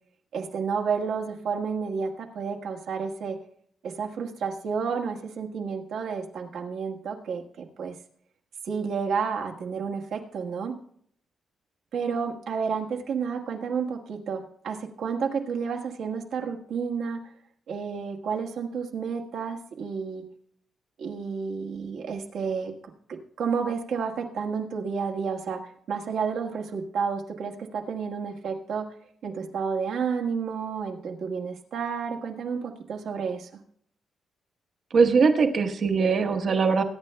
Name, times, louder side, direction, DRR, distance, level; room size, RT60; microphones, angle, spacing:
voice 1, 0.3-3.4 3.8-7.9 8.7-10.7 11.9-17.2 17.7-20.2 21.0-22.7 23.1-25.6 25.9-28.9 29.2-33.5, right 6 dB, 70° right, 2 dB, 1.4 m, -31 dB
voice 2, 34.9-36.8, right 5 dB, 45° right, 7 dB, 1.0 m, -21 dB
21.0 x 9.9 x 2.2 m, 0.64 s
wide cardioid pair, 165°, 0 cm